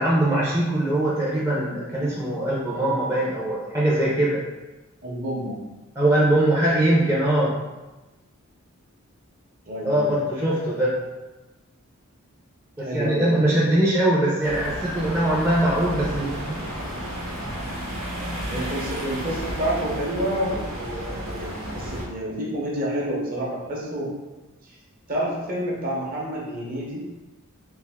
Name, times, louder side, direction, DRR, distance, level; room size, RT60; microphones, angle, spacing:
voice 1, 0.0-4.4 6.0-7.5 9.8-10.9 12.8-16.6, right 1 dB, 15° right, -8 dB, 0.6 m, -22 dB
voice 2, 5.0-5.6 9.7-10.3 12.8-13.5 18.5-24.1 24.6-24.8 25.1-27.0, equal, 45° right, -4 dB, 0.9 m, -29 dB
sound 1, 14.4-22.1, right 1 dB, 85° right, 0.9 m, -32 dB
3.4 x 2.5 x 3.5 m, 1.1 s
head